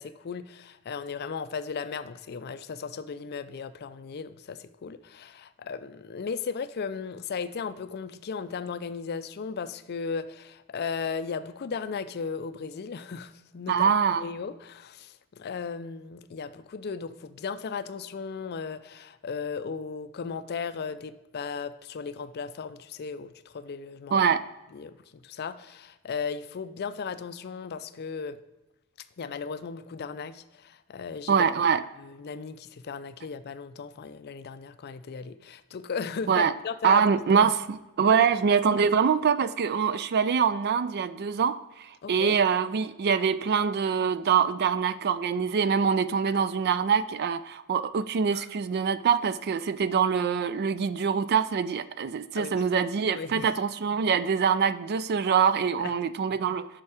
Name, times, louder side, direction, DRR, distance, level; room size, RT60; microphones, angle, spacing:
voice 1, 0.0-13.9 14.2-24.3 24.7-28.4 29.2-31.5 32.0-37.0 37.4-37.5 38.1-38.3 42.0-42.4 48.3-48.5 52.3-52.6 53.1-53.5 55.8-55.9, left 5 dB, 45° left, 13 dB, 0.4 m, -36 dB
voice 2, 13.7-14.2 24.1-24.4 31.3-31.8 36.3-36.5 36.8-56.7, right 6 dB, 45° right, 14 dB, 0.3 m, -24 dB
7.0 x 5.7 x 4.8 m, 1.0 s
head